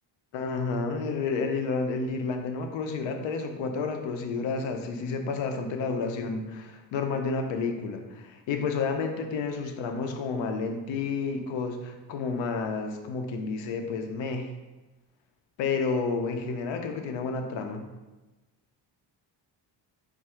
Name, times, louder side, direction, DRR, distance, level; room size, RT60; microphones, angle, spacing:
voice 1, 0.3-14.5 15.6-17.8, left 4 dB, 75° left, 5 dB, 0.7 m, -30 dB
3.6 x 2.6 x 4.3 m, 1.1 s
cardioid pair, 170°, 45 cm